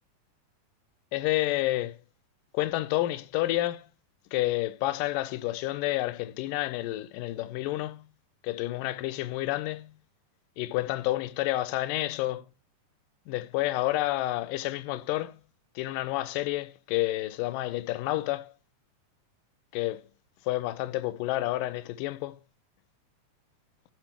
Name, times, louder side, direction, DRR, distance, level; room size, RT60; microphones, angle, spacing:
voice 1, 1.1-2.0 2.5-3.9 4.3-8.0 8.4-9.9 10.6-12.5 13.3-15.4 15.8-18.5 19.7-20.1 20.5-22.4, left 16 dB, 80° left, 2.3 m, -29 dB
10.0 x 4.7 x 7.8 m
omnidirectional pair, 3.9 m